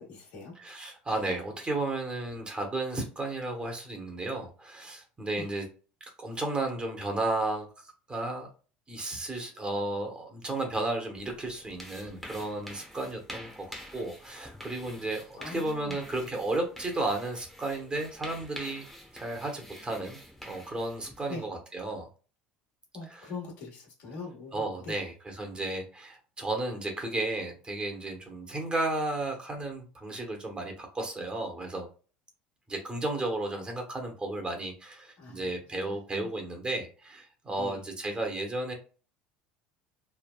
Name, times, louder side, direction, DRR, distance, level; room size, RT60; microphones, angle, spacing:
voice 1, 0.0-0.5 5.4-5.5 15.4-16.0 21.3-21.4 22.9-25.0 35.2-36.3 37.6-37.8, left 3 dB, 70° left, -1 dB, 1.3 m, -42 dB
voice 2, 0.5-5.7 6.2-7.7 8.1-8.5 8.9-18.8 19.1-22.1 23.1-23.3 24.5-31.9 32.7-38.7, right 2 dB, 20° right, 3 dB, 1.0 m, -33 dB
sound 1, 11.1-21.4, equal, 5° left, 0.9 m, -47 dB
3.3 x 2.1 x 2.3 m, 0.36 s
hypercardioid pair, 80°, 4 cm